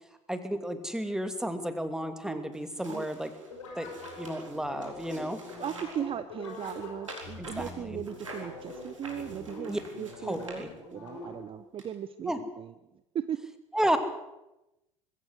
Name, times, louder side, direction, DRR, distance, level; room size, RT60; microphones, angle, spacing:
voice 1, 0.3-3.3 3.8-5.4 7.4-8.0 9.7-9.8 10.2-10.7 12.3-12.4 13.7-14.0, right 1 dB, 5° right, 8 dB, 2.6 m, -32 dB
sound 1, 2.5-6.1 6.4-11.1 11.8-11.9, right 2 dB, 85° right, 4.2 m, -48 dB
sound 2, 3.5-11.6, left 2 dB, 75° left, 5.4 m, -44 dB
voice 2, 5.6-12.7 13.1-13.4, right 9 dB, 35° right, 12 dB, 1.0 m, -37 dB
21.5 x 16.0 x 8.0 m, 0.94 s
figure-of-eight pair, 65°, 16 cm